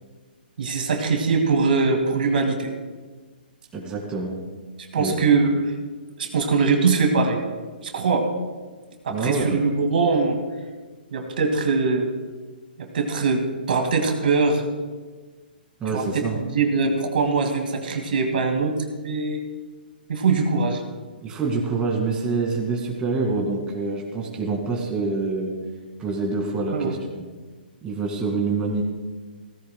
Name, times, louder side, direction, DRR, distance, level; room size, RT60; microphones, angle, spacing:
voice 1, 0.6-2.7 4.9-5.6 6.2-7.4 7.8-8.3 9.0-10.4 11.1-12.1 12.8-14.6 15.9-18.7 19.0-19.4 20.1-20.8 26.7-27.0, right 4 dB, 60° right, 3 dB, 2.0 m, -22 dB
voice 2, 3.7-4.4 5.0-5.2 9.1-9.7 15.8-16.4 21.2-25.5 26.0-27.3 27.8-28.8, right 3 dB, 15° right, 0 dB, 2.1 m, -26 dB
17.0 x 15.0 x 2.2 m, 1.4 s
hypercardioid pair, 140°, 6 cm